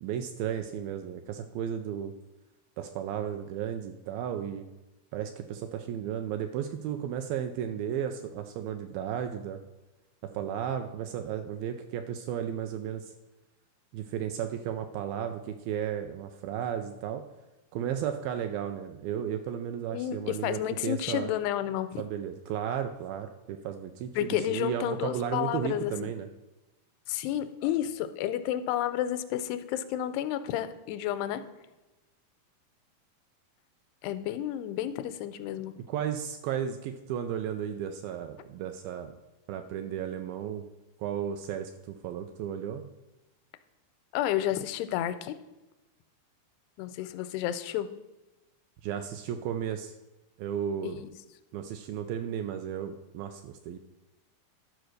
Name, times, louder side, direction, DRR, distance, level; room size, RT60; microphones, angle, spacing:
voice 1, 0.0-2.1 2.8-4.7 5.1-9.6 10.3-13.1 13.9-17.2 17.7-21.3 22.0-26.3 35.9-39.1 39.5-40.7 41.0-42.9 48.8-49.9 50.4-51.0 51.5-53.8, right 9 dB, 80° right, 7 dB, 2.1 m, -34 dB
voice 2, 19.9-22.0 24.2-26.1 27.1-31.4 34.0-35.7 44.1-45.4 46.8-47.9 50.8-51.1, left 12 dB, 85° left, 12 dB, 2.6 m, -31 dB
11.5 x 4.6 x 6.4 m, 1.0 s
omnidirectional pair, 4.6 m